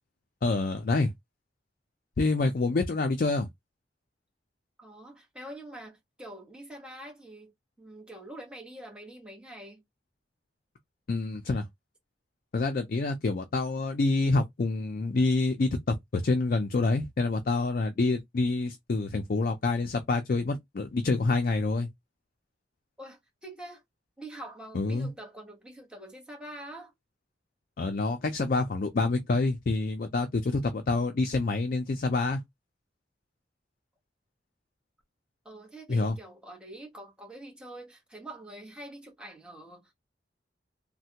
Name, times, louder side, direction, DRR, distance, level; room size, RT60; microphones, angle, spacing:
voice 1, 0.4-1.1 2.2-3.5 11.1-11.6 12.5-21.9 24.7-25.1 27.8-32.4 35.9-36.1, left 3 dB, 50° left, 0.4 m, -27 dB
voice 2, 4.8-9.8 23.0-23.8 24.2-26.9 35.4-39.9, right 1 dB, 5° right, 1.1 m, -45 dB
3.2 x 2.1 x 2.8 m
head